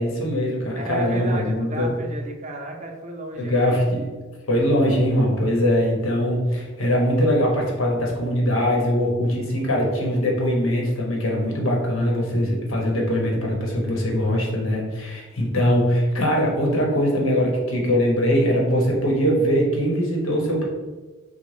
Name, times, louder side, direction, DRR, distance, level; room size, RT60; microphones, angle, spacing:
voice 1, 0.0-1.9 3.4-4.0 4.5-20.6, equal, 65° left, -2 dB, 1.1 m, -21 dB
voice 2, 0.7-3.8, right 1 dB, 35° right, 1 dB, 0.6 m, -32 dB
4.8 x 2.3 x 3.8 m, 1.3 s
head